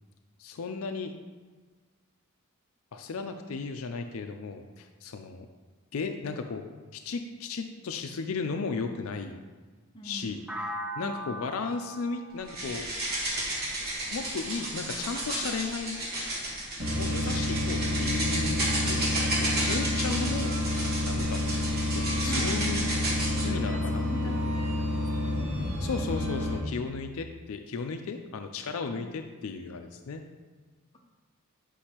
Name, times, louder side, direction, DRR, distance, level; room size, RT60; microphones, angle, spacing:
voice 1, 0.4-1.1 2.9-5.5 5.9-6.6 6.9-9.4 10.0-10.4 11.0-12.9 14.1-16.0 17.0-19.1 19.4-20.6 21.1-21.5 21.9-22.9 23.4-24.5 25.8-30.2, left 4 dB, 70° left, 6 dB, 0.4 m, -35 dB
voice 2, 9.9-10.6 11.0-11.4 22.2-22.8 23.3-25.5 28.9-29.1, equal, 20° left, -1 dB, 0.8 m, -43 dB
sound 1, 10.5-14.4, right 1 dB, 5° right, 0.3 m, -40 dB
sound 2, 12.5-23.5, right 1 dB, 45° right, 1.5 m, -32 dB
sound 3, 16.8-26.6, left 1 dB, 75° right, 1.8 m, -29 dB
8.3 x 5.3 x 2.9 m, 1.4 s
head